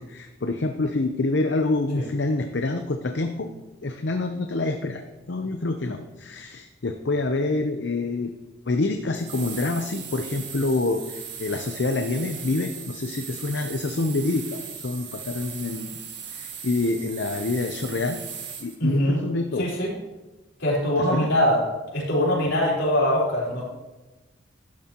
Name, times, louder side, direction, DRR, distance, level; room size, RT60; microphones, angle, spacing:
voice 1, 0.0-3.5 3.8-8.3 8.7-16.0 16.3-18.2 18.6-19.7 21.0-21.3, left 2 dB, 65° left, 5 dB, 0.7 m, -27 dB
sound 1, 9.1-18.8, right 7 dB, 65° right, 1.7 m, -38 dB
voice 2, 18.8-19.2 19.6-19.9 20.6-21.6 21.9-23.6, equal, 80° left, -5 dB, 4.3 m, -22 dB
12.5 x 11.0 x 3.0 m, 1.1 s
head